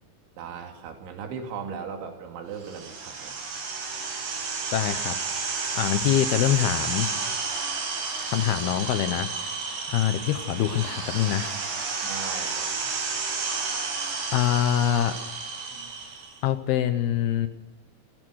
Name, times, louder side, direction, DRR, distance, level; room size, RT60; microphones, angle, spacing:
voice 1, 0.4-3.3 12.0-13.0 15.7-15.9, right 6 dB, 90° right, 3 dB, 4.9 m, -38 dB
sound 1, 2.6-16.4, right 4 dB, 70° right, 6.8 m, -31 dB
voice 2, 4.7-5.2 5.8-7.1 8.3-9.3 9.9-11.5 14.3-15.1 16.4-17.5, left 11 dB, 75° left, 10 dB, 2.6 m, -24 dB
24.0 x 17.0 x 6.4 m, 1.1 s
omnidirectional pair, 5.2 m